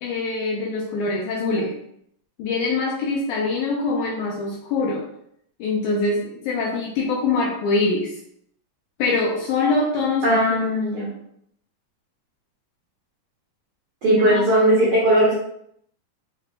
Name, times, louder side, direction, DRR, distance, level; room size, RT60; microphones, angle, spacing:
voice 1, 0.0-1.7 2.4-5.1 5.6-8.1 9.0-10.4 14.1-14.4, left 3 dB, 80° left, -2 dB, 1.8 m, -24 dB
voice 2, 10.2-11.1 14.0-15.4, right 1 dB, 75° right, -6 dB, 1.4 m, -18 dB
5.8 x 2.2 x 3.3 m, 0.72 s
omnidirectional pair, 4.0 m